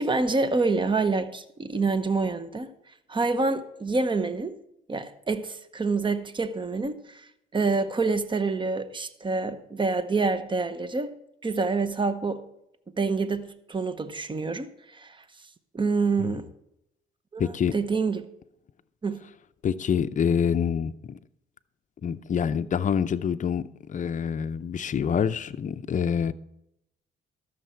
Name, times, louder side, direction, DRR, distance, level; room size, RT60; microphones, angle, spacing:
voice 1, 0.0-2.7 3.1-4.5 4.9-11.1 11.4-12.5 13.0-15.2 15.7-16.5 17.3-18.2 19.0-19.2, right 3 dB, 25° right, 0.9 m, -27 dB
voice 2, 17.4-17.7 19.6-21.2 22.0-23.6 23.9-26.3, left 7 dB, 40° left, 0.6 m, -26 dB
13.0 x 6.6 x 4.5 m
cardioid pair, 90°, 20 cm